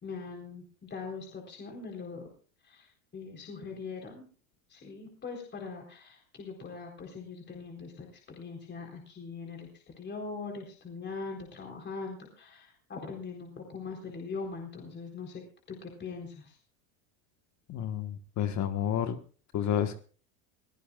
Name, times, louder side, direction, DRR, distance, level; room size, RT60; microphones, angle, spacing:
voice 1, 0.0-2.3 2.6-4.2 4.7-16.6, left 4 dB, 25° left, 4.1 m, -42 dB
voice 2, 17.7-19.2 19.5-20.0, left 9 dB, 40° left, 1.5 m, -30 dB
23.0 x 16.0 x 2.5 m
supercardioid pair, 120°, 43 cm